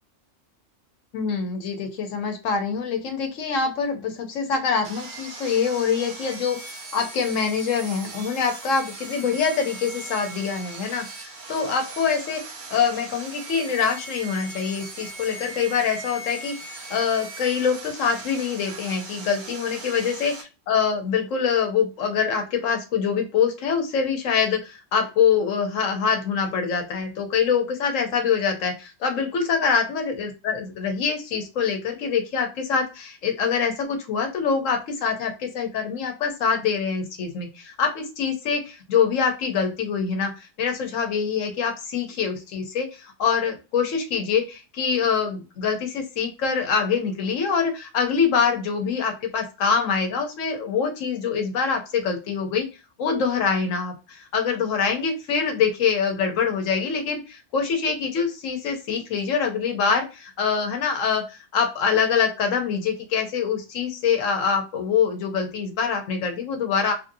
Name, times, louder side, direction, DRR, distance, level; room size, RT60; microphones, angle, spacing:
voice 1, 1.1-12.4 12.7-52.7 53.0-66.9, left 6 dB, 80° left, 4 dB, 1.1 m, -25 dB
Sawing, 4.8-20.4, right 3 dB, 60° right, 1.0 m, -39 dB
3.1 x 2.6 x 2.5 m, 0.30 s
omnidirectional pair, 1.3 m